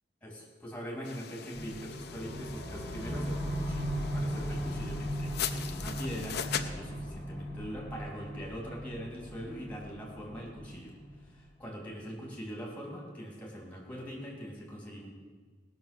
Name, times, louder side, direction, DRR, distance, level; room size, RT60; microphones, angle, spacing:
voice 1, 0.2-10.9 11.2-15.1, equal, 10° left, -2 dB, 3.1 m, -42 dB
sound 1, 1.0-6.7, left 8 dB, 60° left, 0.7 m, -40 dB
sound 2, 1.5-11.6, equal, 5° right, 2.8 m, -38 dB
18.5 x 6.3 x 6.8 m, 1.4 s
head